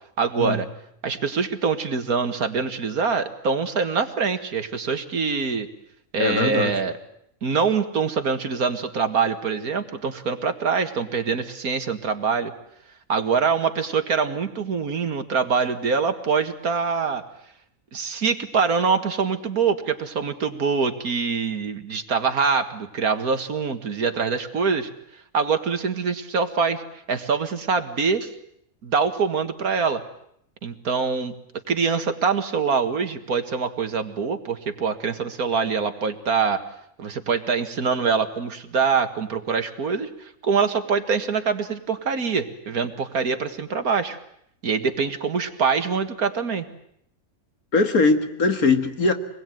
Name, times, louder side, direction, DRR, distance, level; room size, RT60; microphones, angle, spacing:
voice 1, 0.2-0.7 1.0-5.7 6.1-6.9 7.4-12.5 13.1-17.2 17.9-24.9 25.3-26.8 27.1-28.3 28.8-30.0 30.6-31.3 31.7-36.6 37.0-44.2 44.6-46.7, right 5 dB, 85° right, 8 dB, 2.2 m, -24 dB
voice 2, 6.2-6.7 47.7-49.1, left 3 dB, 75° left, 7 dB, 2.4 m, -20 dB
26.0 x 21.0 x 9.2 m, 0.73 s
omnidirectional pair, 1.5 m